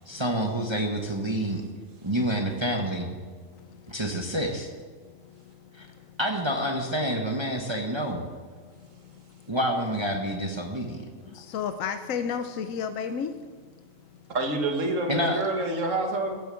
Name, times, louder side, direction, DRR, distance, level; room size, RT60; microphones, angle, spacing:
voice 1, 0.1-1.6 2.0-3.1 3.9-4.7 5.7-5.9 6.2-8.2 9.5-11.0 15.1-15.4, equal, 20° right, 2 dB, 1.1 m, -28 dB
voice 2, 3.5-4.3 5.0-6.2 8.6-9.6 11.1-14.4, left 7 dB, 80° left, 9 dB, 1.1 m, -36 dB
voice 3, 14.3-16.5, right 2 dB, 70° right, 4 dB, 1.9 m, -27 dB
16.0 x 7.3 x 7.6 m, 1.5 s
omnidirectional pair, 1.4 m